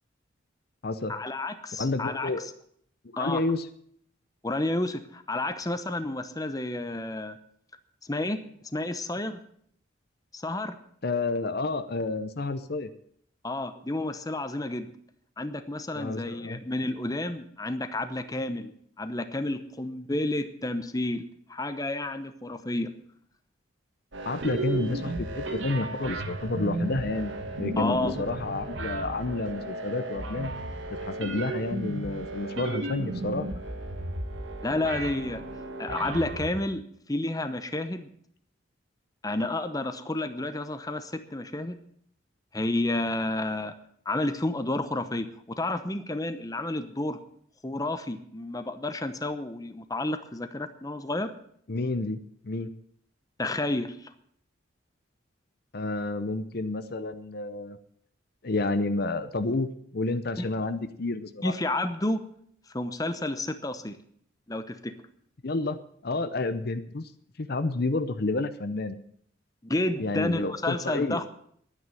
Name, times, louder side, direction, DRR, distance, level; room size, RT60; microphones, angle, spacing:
voice 1, 1.1-2.3 3.2-3.4 4.4-7.4 8.0-8.4 8.7-9.4 10.3-10.8 13.4-14.9 15.4-21.2 21.5-22.9 27.8-28.1 34.6-35.4 35.8-36.8 37.1-38.1 39.2-41.8 42.5-43.7 44.0-47.2 47.6-51.3 53.4-54.1 60.4-60.5 61.4-62.2 62.7-64.0 64.5-64.9 69.6-71.3, left 2 dB, 20° left, 10 dB, 0.8 m, -30 dB
voice 2, 1.8-2.4 3.0-3.7 11.0-12.9 15.9-16.6 24.3-30.5 30.9-33.5 51.7-52.7 55.7-57.8 58.4-61.5 65.4-67.1 67.4-69.0 70.0-71.2, left 2 dB, 50° left, 11 dB, 0.7 m, -30 dB
sound 1, 24.1-36.5, right 2 dB, 70° right, 1.7 m, -34 dB
11.0 x 9.6 x 8.8 m, 0.65 s
head